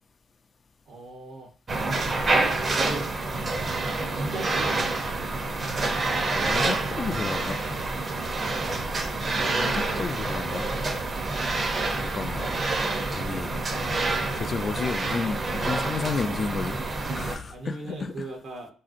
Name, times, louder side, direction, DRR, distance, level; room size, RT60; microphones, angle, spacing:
voice 1, 0.9-1.5 2.6-3.1 4.1-5.3 17.5-18.7, right 2 dB, 75° right, 0.7 m, -37 dB
sound 1, 1.7-17.4, right 2 dB, 35° right, 0.6 m, -27 dB
voice 2, 6.2-7.6 9.4-10.7 12.0-12.6 13.1-13.6 13.9-16.8 17.1-18.3, left 4 dB, 40° left, 0.3 m, -32 dB
3.2 x 2.7 x 2.5 m
cardioid pair, 90°, 0 cm